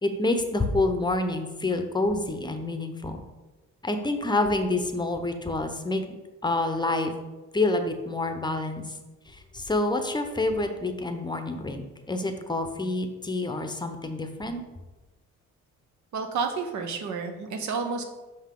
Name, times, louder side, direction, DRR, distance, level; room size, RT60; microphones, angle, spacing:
voice 1, 0.0-3.2 3.8-6.1 6.4-7.1 7.5-9.0 9.3-14.6, left 2 dB, 15° left, 6 dB, 0.7 m, -27 dB
voice 2, 16.1-18.0, right 5 dB, 70° right, 3 dB, 0.9 m, -30 dB
5.6 x 5.3 x 3.8 m, 1.1 s
cardioid pair, 90°, 30 cm